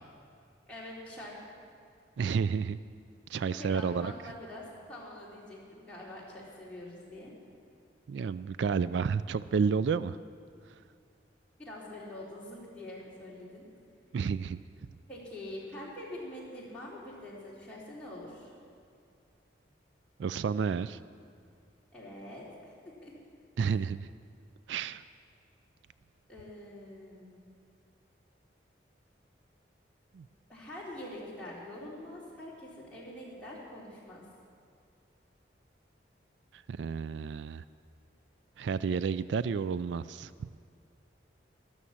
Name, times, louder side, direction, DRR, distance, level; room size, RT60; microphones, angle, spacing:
voice 1, 0.7-1.4 3.4-7.3 11.6-13.6 15.1-18.5 21.9-23.1 26.3-27.4 30.5-34.2, left 1 dB, 5° left, -7 dB, 3.6 m, -45 dB
voice 2, 2.2-2.8 3.3-4.1 8.1-10.2 14.1-14.6 20.2-21.0 23.6-24.1 24.7-25.0 30.1-30.3 36.5-37.6 38.6-40.3, right 6 dB, 75° right, 15 dB, 0.3 m, -31 dB
13.0 x 12.5 x 7.3 m, 2.4 s
head